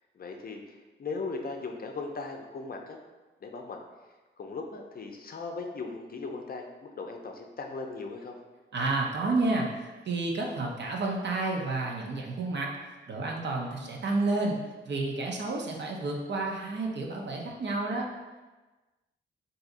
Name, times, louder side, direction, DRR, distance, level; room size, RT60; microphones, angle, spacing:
voice 1, 0.1-3.0 3.4-3.8 4.4-8.4, left 4 dB, 45° left, 3 dB, 0.5 m, -38 dB
voice 2, 8.7-9.7 10.1-12.7 13.1-14.6 14.8-18.1, right 3 dB, 60° right, 0 dB, 0.7 m, -30 dB
3.7 x 2.7 x 2.6 m, 1.2 s
cardioid pair, 60°, 21 cm